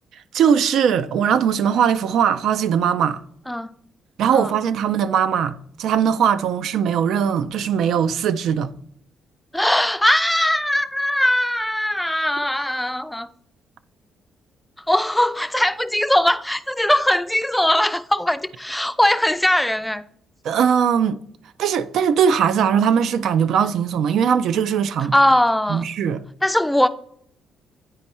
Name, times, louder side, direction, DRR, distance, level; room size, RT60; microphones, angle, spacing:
voice 1, 0.3-3.2 4.2-8.7 20.4-21.2 21.6-25.1 25.7-26.2, right 8 dB, 75° right, 0.4 m, -20 dB
voice 2, 9.5-13.3 14.8-20.0 25.1-25.8 26.4-26.9, left 1 dB, 5° left, 0.4 m, -20 dB
9.1 x 4.4 x 4.2 m
cardioid pair, 90°, 0 cm